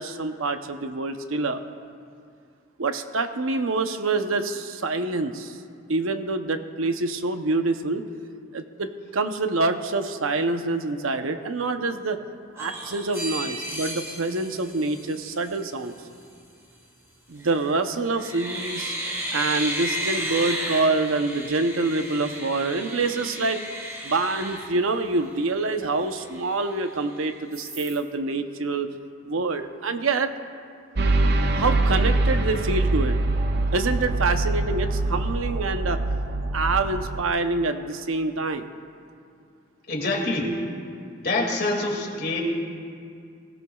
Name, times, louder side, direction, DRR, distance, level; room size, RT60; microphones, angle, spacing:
voice 1, 0.0-1.6 2.8-5.6 5.9-8.0 8.5-12.2 12.5-15.9 17.3-18.9 19.3-23.6 24.0-28.9 29.3-30.3 31.6-33.2 33.7-36.0 36.5-38.6, right 3 dB, 85° right, 7 dB, 0.8 m, -26 dB
sound 1, 12.6-15.6 17.4-17.8 18.1-25.4 25.8-25.9 26.2-27.1 27.5-28.0, right 1 dB, 15° right, 1.5 m, -34 dB
sound 2, 31.0-37.2, right 2 dB, 50° right, 0.6 m, -24 dB
voice 2, 39.9-40.5 41.2-42.4, left 2 dB, 50° left, 0 dB, 2.3 m, -25 dB
21.0 x 17.0 x 2.4 m, 2.3 s
head